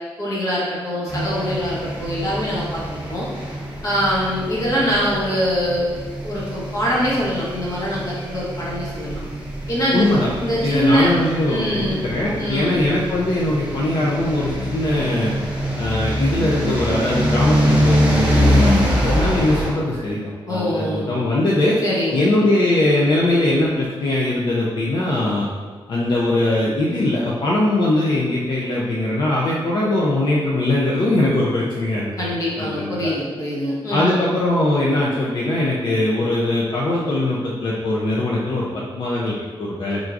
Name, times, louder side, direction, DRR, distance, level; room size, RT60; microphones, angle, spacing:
voice 1, 0.2-2.8 3.1-3.3 3.8-5.9 6.2-9.2 9.7-10.1 10.4-11.1 11.5-12.0 12.3-12.8 20.5-21.1 21.8-22.3 32.2-34.2, equal, 35° left, -7 dB, 1.2 m, -23 dB
sound 1, 1.1-19.7, equal, 10° right, 0.8 m, -24 dB
voice 2, 9.9-10.3 10.6-15.3 15.8-21.8 22.1-25.5 25.9-32.1 32.6-33.1 33.9-40.0, left 1 dB, 50° left, -5 dB, 0.5 m, -21 dB
4.5 x 3.6 x 2.5 m, 1.5 s
wide cardioid pair, 170°, 10 cm